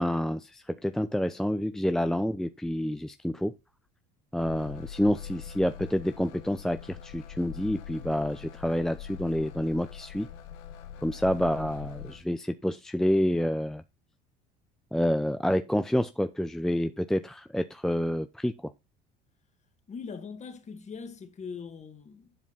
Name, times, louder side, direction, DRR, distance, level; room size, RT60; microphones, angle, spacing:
voice 1, 0.0-3.5 4.3-10.3 11.0-13.8 14.9-18.5, equal, ahead, 0.6 m, -28 dB
sound 1, 4.4-12.2, left 8 dB, 80° left, 1.7 m, -43 dB
voice 2, 11.8-12.2 19.9-22.4, left 5 dB, 35° left, 2.2 m, -42 dB
11.0 x 5.1 x 5.7 m
supercardioid pair, 90°, 21 cm